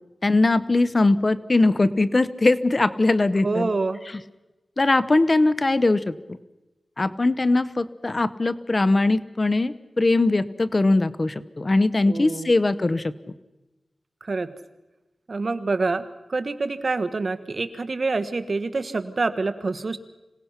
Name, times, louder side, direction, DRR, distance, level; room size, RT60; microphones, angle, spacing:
voice 1, 0.2-3.7 4.8-6.1 7.0-13.1, left 2 dB, 35° left, 15 dB, 0.8 m, -21 dB
voice 2, 3.4-4.0 12.0-12.5 14.2-14.5 15.3-16.0 16.3-20.0, right 3 dB, 50° right, 10 dB, 1.4 m, -26 dB
26.0 x 18.0 x 5.8 m, 1.0 s
wide cardioid pair, 80°, 0 cm